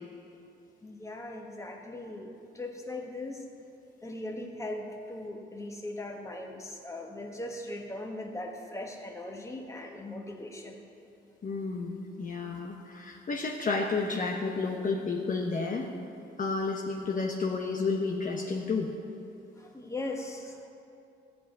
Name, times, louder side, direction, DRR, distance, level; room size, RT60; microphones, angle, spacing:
voice 1, 0.8-3.4 4.0-10.8 19.5-20.7, left 1 dB, 15° left, 1 dB, 1.6 m, -39 dB
voice 2, 11.4-15.9 16.4-18.9, left 4 dB, 40° left, 0 dB, 1.0 m, -31 dB
14.5 x 5.0 x 9.2 m, 2.7 s
cardioid pair, 90°, 20 cm